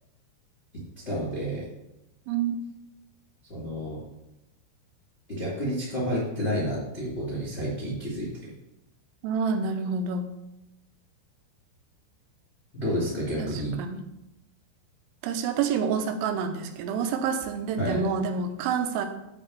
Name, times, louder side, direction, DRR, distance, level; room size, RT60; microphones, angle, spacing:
voice 1, 1.0-1.6 3.5-4.0 5.3-8.3 12.7-13.8 17.8-18.0, equal, 25° left, -6 dB, 1.3 m, -30 dB
voice 2, 2.3-2.6 9.2-10.3 13.4-14.0 15.2-19.1, right 6 dB, 85° right, 6 dB, 3.3 m, -28 dB
9.4 x 3.7 x 7.1 m, 0.91 s
omnidirectional pair, 6.0 m